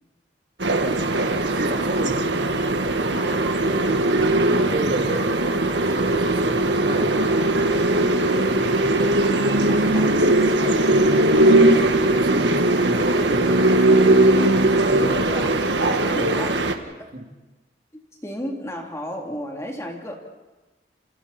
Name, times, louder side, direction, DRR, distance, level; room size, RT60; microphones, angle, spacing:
sound 1, 0.6-16.7, right 2 dB, 80° right, 1.7 m, -19 dB
voice 1, 1.5-2.3 4.7-7.3 8.6-8.7 11.8-13.5 14.8-15.4 16.1-16.2 17.1-17.2, right 1 dB, 50° right, 2 dB, 2.9 m, -30 dB
voice 2, 3.1-4.2 7.7-8.7 9.0-12.0 13.9-16.9 17.9-20.2, equal, 15° left, 0 dB, 3.2 m, -35 dB
29.5 x 29.5 x 4.4 m, 1.1 s
head